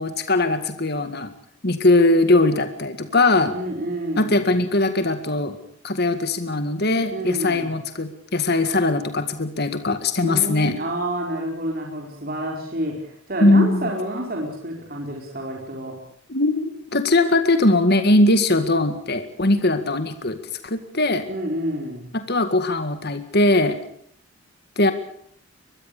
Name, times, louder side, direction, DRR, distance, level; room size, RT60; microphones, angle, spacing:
voice 1, 0.0-1.3 1.6-3.6 4.2-5.6 5.8-10.8 13.4-13.9 16.3-20.4 20.6-21.3 22.1-23.8 24.8-24.9, left 2 dB, 50° left, 9 dB, 1.9 m, -20 dB
voice 2, 3.5-4.4 7.1-7.7 10.2-15.9 21.3-22.1, right 1 dB, 45° right, 0 dB, 4.7 m, -28 dB
24.5 x 21.5 x 6.7 m, 0.66 s
head